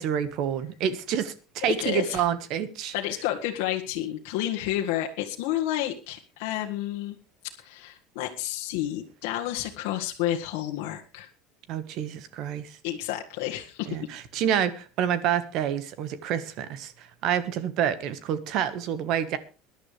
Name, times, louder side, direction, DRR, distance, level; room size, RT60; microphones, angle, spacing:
voice 1, 0.0-2.9 11.7-12.8 13.9-19.4, right 9 dB, 45° right, 14 dB, 1.4 m, -28 dB
voice 2, 1.7-2.2 2.9-7.2 7.6-11.3 12.8-13.9, left 13 dB, 65° left, 1 dB, 1.7 m, -30 dB
21.5 x 11.0 x 3.3 m, 0.32 s
cardioid pair, 170°, 0 cm